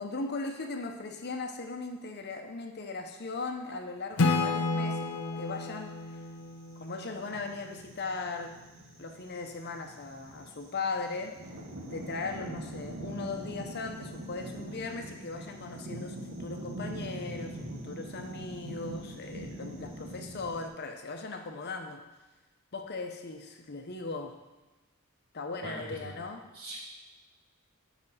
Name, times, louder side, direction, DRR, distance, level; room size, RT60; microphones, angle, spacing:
voice 1, 0.0-6.0 6.8-8.6 9.0-11.4 11.9-22.0 22.7-24.4 25.3-26.5, left 3 dB, 50° left, 5 dB, 0.9 m, -38 dB
Acoustic guitar / Strum, 4.2-7.7, left 3 dB, 80° left, 0.7 m, -31 dB
sound 1, 6.5-20.7, right 1 dB, 65° right, 1.1 m, -43 dB
voice 2, 25.6-26.1 26.5-26.8, right 1 dB, 80° right, -6 dB, 2.9 m, -41 dB
6.7 x 6.1 x 5.6 m, 1.2 s
head